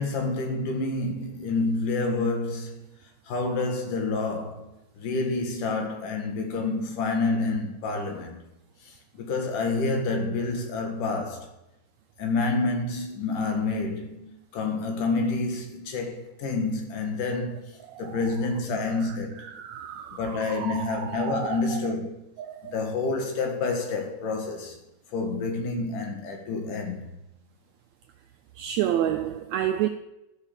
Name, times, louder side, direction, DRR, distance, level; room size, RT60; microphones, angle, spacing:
voice 1, 0.0-2.9 3.3-4.7 5.0-8.4 8.9-11.5 12.2-19.5 20.1-22.2 22.7-24.8 25.1-27.1, left 3 dB, 80° left, 3.2 m, -28 dB
voice 2, 17.8-18.3 18.9-21.8 22.4-22.8 28.5-29.9, right 11 dB, 90° right, 1.5 m, -30 dB
14.0 x 4.9 x 7.1 m
omnidirectional pair, 3.7 m